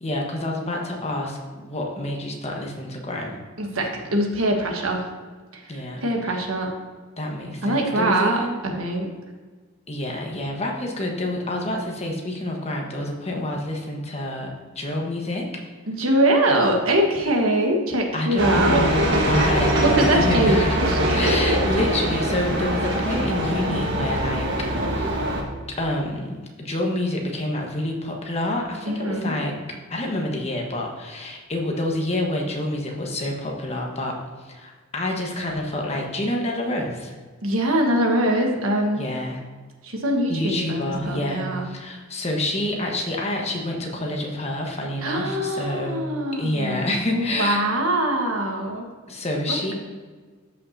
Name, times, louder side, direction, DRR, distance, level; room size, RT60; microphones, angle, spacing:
voice 1, 0.0-3.4 5.7-6.4 7.2-8.7 9.9-14.5 14.7-15.5 18.1-20.8 21.1-25.2 25.7-29.5 29.9-37.2 38.9-39.4 40.3-46.0 46.4-47.6 49.1-49.7, left 1 dB, 30° left, 0 dB, 1.3 m, -28 dB
voice 2, 3.6-5.0 5.7-5.8 6.0-6.7 7.6-9.1 15.9-18.8 19.8-21.3 28.9-29.4 37.4-39.1 39.8-41.7 45.0-46.8 47.1-48.9 49.5-49.7, right 1 dB, 75° right, 2 dB, 1.4 m, -23 dB
sound 1, 18.4-25.4, right 1 dB, 60° right, 1.5 m, -22 dB
13.0 x 5.7 x 2.7 m, 1.4 s
head